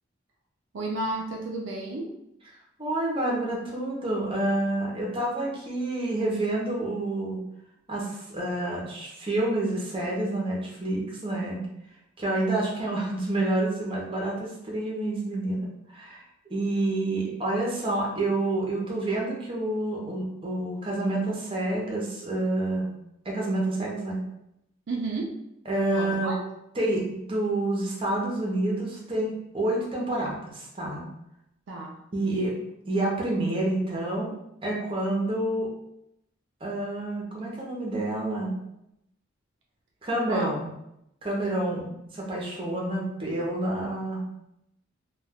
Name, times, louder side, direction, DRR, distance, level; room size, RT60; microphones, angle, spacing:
voice 1, 0.7-2.1 24.9-25.4 25.9-26.3 31.7-31.9 40.3-40.5, right 2 dB, 70° right, -1 dB, 0.4 m, -32 dB
voice 2, 2.8-7.4 7.9-11.6 12.2-15.7 15.9-16.2 16.5-22.9 23.2-24.2 25.7-26.3 26.8-31.1 32.1-32.5 32.8-34.3 34.6-35.7 36.6-38.5 40.0-40.7 41.2-44.3, right 1 dB, 25° right, -3 dB, 0.7 m, -28 dB
2.2 x 2.2 x 3.4 m, 0.82 s
head